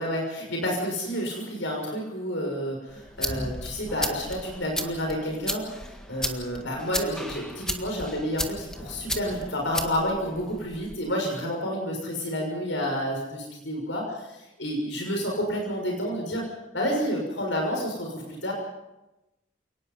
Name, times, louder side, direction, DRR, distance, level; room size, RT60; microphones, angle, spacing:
voice 1, 0.0-5.6 6.1-14.0 14.3-16.4 16.7-18.5, equal, 75° left, 1 dB, 6.4 m, -29 dB
sound 1, 2.9-11.0, equal, 5° left, 1.7 m, -35 dB
28.5 x 19.5 x 5.5 m, 0.97 s
head